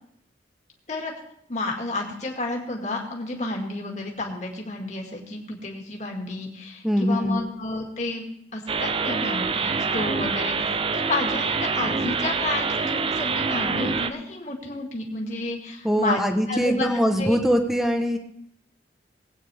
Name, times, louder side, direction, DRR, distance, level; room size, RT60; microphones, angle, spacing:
voice 1, 1.5-8.3 8.5-16.9 17.2-17.4, left 2 dB, 40° left, 0 dB, 2.0 m, -31 dB
voice 2, 6.8-7.4 15.8-18.2, equal, ahead, 5 dB, 1.1 m, -22 dB
sound 1, 8.7-14.1, right 4 dB, 30° right, 0.5 m, -26 dB
20.0 x 8.8 x 3.4 m, 0.72 s
head